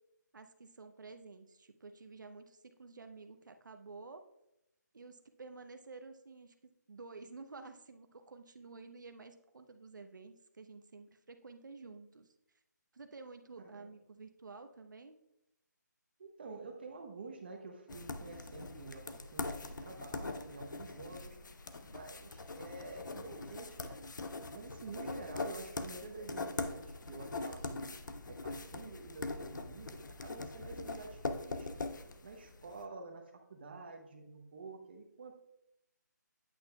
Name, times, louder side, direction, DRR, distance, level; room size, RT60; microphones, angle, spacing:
voice 1, 0.3-4.2 4.9-6.5 6.9-12.3 12.9-15.2, right 4 dB, 80° right, 7 dB, 0.7 m, -51 dB
voice 2, 13.6-13.9 16.2-21.4 21.9-24.0 24.5-28.0 28.3-31.7 32.2-35.3, right 3 dB, 30° right, 3 dB, 0.8 m, -49 dB
sound 1, 17.9-32.7, left 3 dB, 80° left, 0.6 m, -42 dB
8.6 x 7.8 x 2.3 m, 0.85 s
hypercardioid pair, 175°, 10 cm